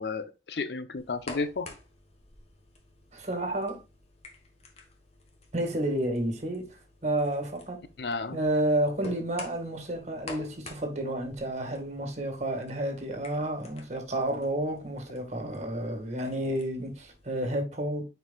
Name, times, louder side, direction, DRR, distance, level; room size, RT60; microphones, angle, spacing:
voice 1, 0.0-1.7 8.0-8.4, left 4 dB, 70° left, 0.7 m, -32 dB
sound 1, 1.0-17.5, left 2 dB, 35° left, 1.3 m, -50 dB
voice 2, 3.1-3.8 5.5-7.9 8.3-18.1, right 1 dB, 40° right, 1.8 m, -31 dB
9.3 x 4.7 x 2.3 m
head